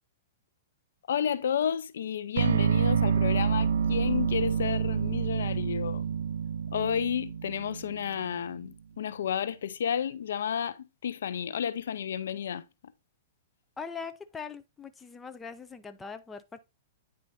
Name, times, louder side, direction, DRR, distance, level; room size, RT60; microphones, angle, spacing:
voice 1, 1.1-6.0 6.7-12.6, left 8 dB, 85° left, 0.5 m, -31 dB
sound 1, 2.4-8.4, right 7 dB, 85° right, 0.3 m, -28 dB
voice 2, 13.8-16.6, left 5 dB, 10° left, 0.5 m, -41 dB
9.6 x 4.4 x 2.6 m
hypercardioid pair, 150°, 0 cm